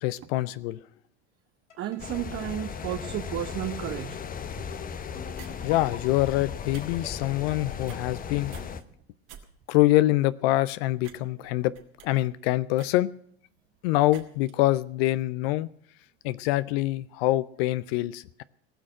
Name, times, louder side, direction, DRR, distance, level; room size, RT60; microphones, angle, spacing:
voice 1, 0.0-0.8 5.6-8.5 9.7-11.7 12.0-13.1 13.8-15.7 16.2-18.4, left 17 dB, 65° left, 17 dB, 0.6 m, -25 dB
sound 1, 1.7-8.8, left 4 dB, 90° left, 2.7 m, -48 dB
voice 2, 1.8-4.2 4.6-4.7, right 12 dB, 40° right, 7 dB, 0.9 m, -33 dB
sound 2, 2.0-8.8, left 7 dB, 25° left, 0.9 m, -37 dB
sound 3, 4.9-5.0 5.3-5.7 6.6-6.9 7.1-7.4 7.8-8.3 8.5-8.8 9.3-9.4 9.9-10.0 10.5-10.7 11.0-11.1 11.4-13.6 14.1-14.5, right 10 dB, 65° right, 2.6 m, -49 dB
18.5 x 6.4 x 10.0 m, 0.65 s
hypercardioid pair, 80°, 33 cm